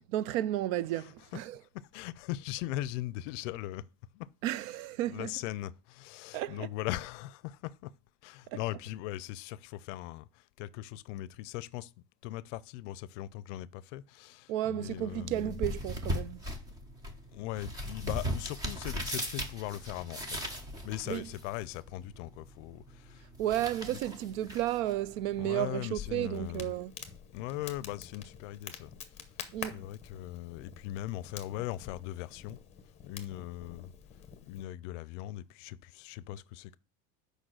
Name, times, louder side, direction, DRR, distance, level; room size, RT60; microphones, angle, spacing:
voice 1, 0.1-1.6 4.4-5.3 6.3-6.7 8.5-8.6 14.5-16.4 21.1-21.3 23.4-26.9 29.5-29.9, right 13 dB, 70° right, 0.5 m, -33 dB
voice 2, 1.9-3.8 4.1-4.3 5.1-7.9 8.2-11.9 12.2-15.6 17.3-20.4 20.8-23.3 25.4-26.7 27.3-28.9 29.6-32.6 33.0-33.9 34.4-36.8, left 15 dB, 60° left, 0.5 m, -39 dB
sound 1, 14.8-25.8, equal, 10° right, 0.3 m, -39 dB
Crackle, 26.0-34.6, left 8 dB, 15° left, 0.7 m, -47 dB
6.3 x 5.1 x 6.3 m
supercardioid pair, 165°, 42 cm